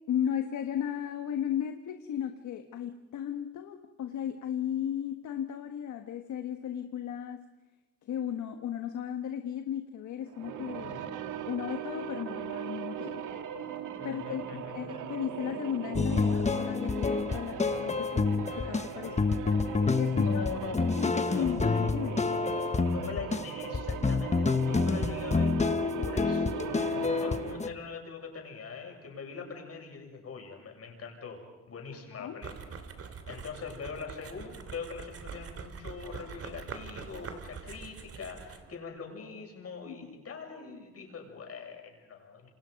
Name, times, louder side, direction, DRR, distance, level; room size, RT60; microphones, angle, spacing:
voice 1, 0.1-7.5 8.0-11.1 11.5-13.3 14.0-19.3 20.0-20.4 20.9-22.3 32.1-32.4 39.9-40.2, left 9 dB, 70° left, 6 dB, 1.5 m, -35 dB
sound 1, 10.3-27.8, right 8 dB, 85° right, 2.0 m, -39 dB
voice 2, 14.0-14.8 20.1-20.8 21.3-21.6 22.8-25.6 26.0-32.5 33.0-42.5, left 5 dB, 50° left, 2 dB, 7.5 m, -42 dB
sound 2, 15.9-27.7, left 4 dB, 25° left, 1.3 m, -28 dB
sound 3, 32.4-38.7, right 5 dB, 50° right, 2.9 m, -44 dB
28.0 x 26.5 x 5.3 m, 1.2 s
cardioid pair, 90°, 30 cm